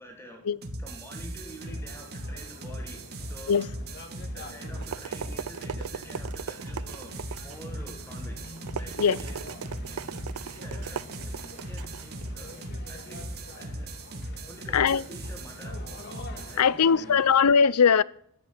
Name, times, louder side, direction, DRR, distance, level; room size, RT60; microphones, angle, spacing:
voice 1, 0.0-0.5 0.8-3.7 4.3-9.5 9.9-10.1 10.5-12.6 12.9-14.0 14.5-15.9 16.5-17.2, equal, 10° left, 3.1 m, -48 dB
sound 1, 0.6-16.6, right 1 dB, 45° right, 1.8 m, -38 dB
sound 2, 1.4-17.5, left 2 dB, 50° left, 2.0 m, -47 dB
sound 3, 4.6-13.3, right 7 dB, 70° right, 0.5 m, -40 dB
voice 2, 16.6-18.0, left 6 dB, 80° left, 0.5 m, -20 dB
14.0 x 7.0 x 9.8 m
head